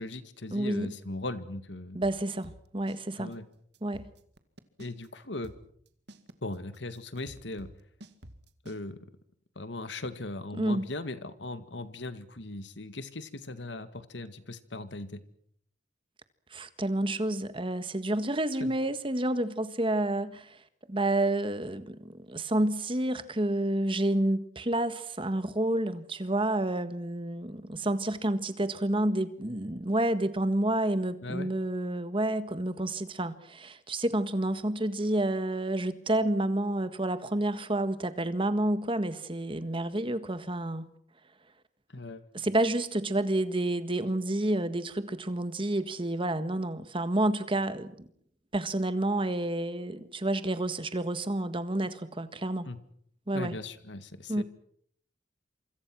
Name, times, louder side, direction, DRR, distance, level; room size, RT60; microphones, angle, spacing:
voice 1, 0.0-2.0 3.2-3.5 4.8-5.5 6.4-7.7 8.6-9.1 9.6-15.2 18.6-18.7 31.2-31.5 41.9-42.2 52.6-52.8 53.3-54.4, left 2 dB, 75° left, 2.0 m, -38 dB
voice 2, 0.5-0.9 1.9-3.4 3.8-4.0 10.6-10.9 16.5-20.6 20.9-40.9 42.3-48.1 48.5-52.7 53.3-53.6 54.3-54.4, right 1 dB, 30° right, 1.6 m, -29 dB
sound 1, 2.0-3.0 3.3-3.4 3.7-5.1 5.4-8.8, right 1 dB, 60° right, 2.1 m, -49 dB
27.0 x 25.5 x 6.2 m
head